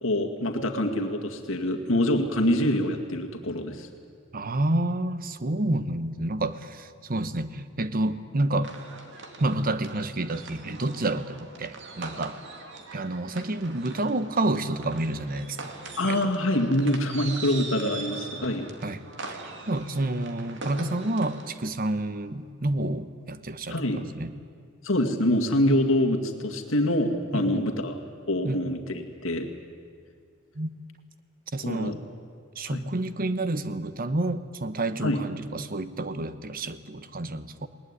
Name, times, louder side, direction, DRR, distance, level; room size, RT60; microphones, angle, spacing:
voice 1, 0.0-3.9 16.0-18.7 23.7-24.0 24.8-27.9 28.3-29.5 31.6-32.0 32.7-32.8 35.0-35.2, left 1 dB, 70° left, 3 dB, 2.1 m, -25 dB
voice 2, 4.3-8.7 9.4-12.4 12.9-15.7 16.0-16.3 18.8-24.3 27.3-27.7 28.4-28.6 30.5-30.7 31.5-32.0 32.6-37.7, right 2 dB, 45° right, 12 dB, 1.0 m, -29 dB
sound 1, 8.6-21.5, right 3 dB, 60° right, 2.4 m, -42 dB
20.0 x 19.5 x 9.8 m, 2.1 s
head